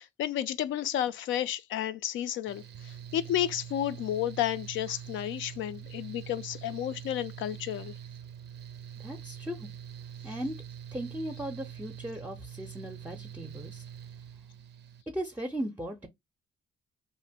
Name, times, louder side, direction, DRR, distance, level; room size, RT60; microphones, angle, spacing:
voice 1, 0.0-7.9, left 11 dB, 75° left, 0.4 m, -32 dB
Mechanical fan, 2.5-15.0, right 9 dB, 60° right, 0.4 m, -44 dB
voice 2, 9.0-9.7 10.2-10.6 10.9-13.8 15.1-16.1, right 1 dB, 10° right, 0.5 m, -37 dB
2.5 x 2.1 x 3.4 m
cardioid pair, 90°, 20 cm